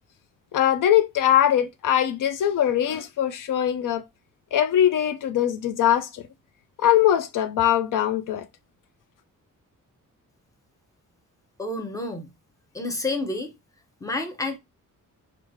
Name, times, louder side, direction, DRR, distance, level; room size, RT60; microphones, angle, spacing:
voice 1, 0.5-4.0 4.5-6.2 6.8-8.5, left 10 dB, 80° left, 0.5 m, -21 dB
voice 2, 11.6-12.3 12.7-13.6 14.0-14.6, left 2 dB, 10° left, 0.7 m, -29 dB
3.1 x 2.4 x 3.5 m
wide cardioid pair, 125°, 32 cm